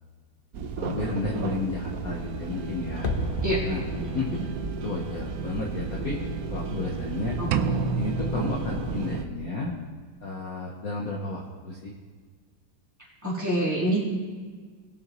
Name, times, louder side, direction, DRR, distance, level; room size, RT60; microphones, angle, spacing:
sound 1, 0.5-9.2, right 4 dB, 60° right, 0.9 m, -33 dB
voice 1, 0.8-3.1 3.6-4.3 4.8-6.2 6.5-7.4 8.0-9.7 10.2-11.9, left 3 dB, 50° left, -2 dB, 1.4 m, -32 dB
sound 2, 3.0-8.0 8.2-8.3, left 2 dB, 85° left, 0.4 m, -36 dB
sound 3, 7.5-9.5, right 5 dB, 85° right, 1.4 m, -29 dB
voice 2, 13.2-14.0, right 1 dB, 10° right, -8 dB, 3.4 m, -26 dB
19.0 x 7.2 x 3.1 m, 1.5 s
omnidirectional pair, 2.2 m